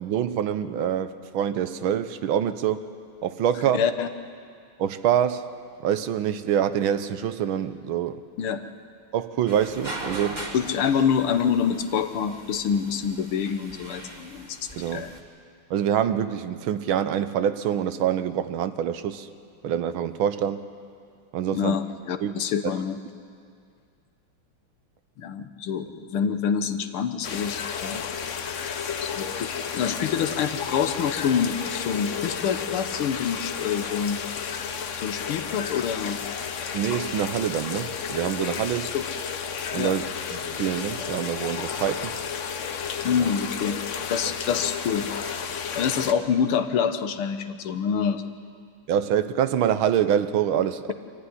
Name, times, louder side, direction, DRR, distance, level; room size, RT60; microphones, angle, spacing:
voice 1, 0.0-2.8 3.2-3.8 4.8-5.5 5.8-8.2 9.1-10.5 14.8-15.1 15.7-19.3 19.6-20.6 21.3-21.8 22.2-22.3 22.6-22.7 36.7-38.9 39.7-40.1 40.4-42.2 43.2-43.3 48.9-50.9, right 9 dB, 75° right, 12 dB, 1.6 m, -25 dB
voice 2, 3.7-4.1 8.4-8.6 10.5-15.2 21.5-23.0 25.2-28.0 29.0-29.5 29.7-34.2 35.0-36.2 38.9-39.1 39.8-40.0 43.0-43.8 44.1-45.1 45.8-48.3, left 7 dB, 85° left, 9 dB, 1.9 m, -26 dB
sound 1, 9.5-15.2, right 2 dB, 20° right, 1.9 m, -40 dB
sound 2, 27.2-46.1, left 7 dB, 55° left, 0.9 m, -32 dB
25.0 x 14.5 x 9.8 m, 2.2 s
omnidirectional pair, 2.3 m